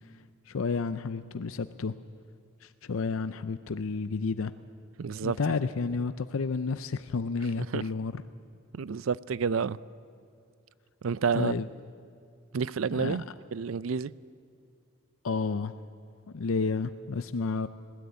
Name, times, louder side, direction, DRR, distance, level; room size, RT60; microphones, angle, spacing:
voice 1, 0.5-1.9 2.6-4.5 5.2-8.1 11.3-11.7 12.9-13.2 15.2-15.7 16.3-17.7, left 4 dB, 75° left, 0.5 m, -31 dB
voice 2, 5.0-5.4 7.7-7.8 8.7-9.8 11.0-11.5 12.5-14.1, right 5 dB, 70° right, 0.5 m, -29 dB
20.0 x 17.0 x 9.5 m
head